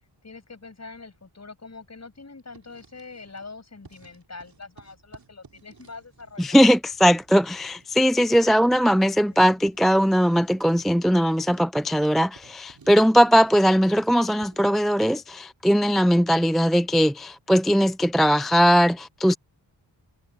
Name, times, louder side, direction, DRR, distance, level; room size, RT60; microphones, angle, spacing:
voice 1, 0.2-6.7 8.4-8.6 9.3-9.5, left 3 dB, 35° left, 7.4 m, -44 dB
Writing, 2.4-3.5 3.8-14.8, right 5 dB, 50° right, 5.0 m, -55 dB
voice 2, 6.4-19.3, equal, ahead, 0.3 m, -19 dB
wide cardioid pair, 140°, 44 cm